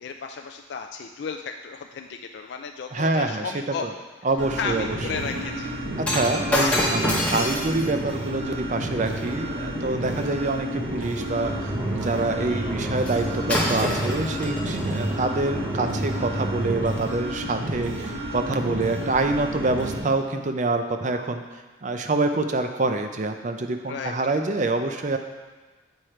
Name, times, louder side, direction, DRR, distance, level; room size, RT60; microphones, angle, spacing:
voice 1, 0.0-3.9 4.6-5.7 12.4-12.7 23.9-24.1, left 5 dB, 60° left, 4 dB, 0.3 m, -33 dB
voice 2, 2.9-3.5 3.8-3.9 4.2-5.0 6.0-25.2, right 2 dB, 40° right, 6 dB, 0.5 m, -26 dB
sound 1, 4.4-20.0, right 1 dB, 80° right, 1.3 m, -31 dB
Shatter, 6.0-10.4 13.1-13.2 13.5-15.0 15.7-15.9, left 1 dB, 5° left, 0.9 m, -28 dB
sound 2, 11.4-17.1, right 1 dB, 25° right, 1.4 m, -32 dB
8.1 x 5.0 x 4.4 m, 1.3 s
head